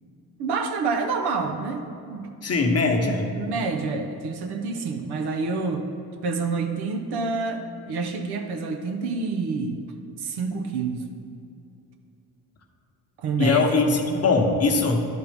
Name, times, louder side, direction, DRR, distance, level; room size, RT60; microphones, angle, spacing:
voice 1, 0.4-2.3 3.3-5.8 6.2-9.8 10.2-11.1 13.2-13.8, right 4 dB, 80° right, 4 dB, 0.8 m, -28 dB
voice 2, 2.4-3.3 13.4-15.1, left 3 dB, 40° left, 3 dB, 0.9 m, -21 dB
10.5 x 4.3 x 3.4 m, 2.6 s
cardioid pair, 65°, 39 cm